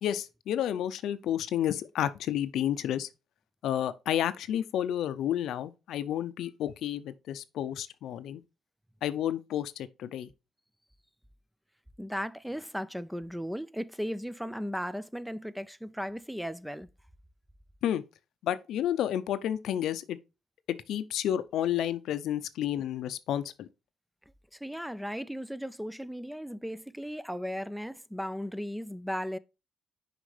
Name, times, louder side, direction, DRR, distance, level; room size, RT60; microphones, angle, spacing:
voice 1, 0.0-3.1 3.6-8.4 9.0-10.3 17.8-18.0 18.4-20.2 20.9-23.7, left 11 dB, 80° left, 0.5 m, -31 dB
voice 2, 12.0-16.9 24.5-29.4, equal, ahead, 0.4 m, -36 dB
6.4 x 5.0 x 3.2 m
cardioid pair, 90°, 0 cm